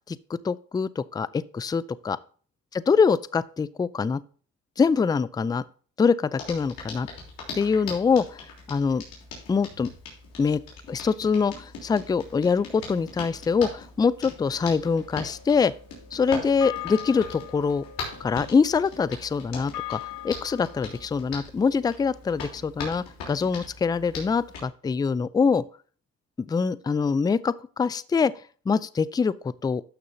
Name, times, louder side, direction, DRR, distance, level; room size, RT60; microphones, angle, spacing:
voice 1, 0.4-2.2 2.7-4.2 4.8-5.6 6.0-7.1 7.5-9.0 9.5-9.9 10.4-10.6 10.9-15.7 16.1-17.8 18.2-20.0 20.2-25.6 26.5-28.3 28.7-29.8, left 5 dB, 10° left, 0.3 m, -24 dB
Hands, 6.4-24.7, left 4 dB, 85° left, 3.3 m, -41 dB
sound 1, 14.4-21.1, left 12 dB, 70° left, 0.9 m, -41 dB
12.0 x 6.6 x 2.6 m
cardioid pair, 80°, 34 cm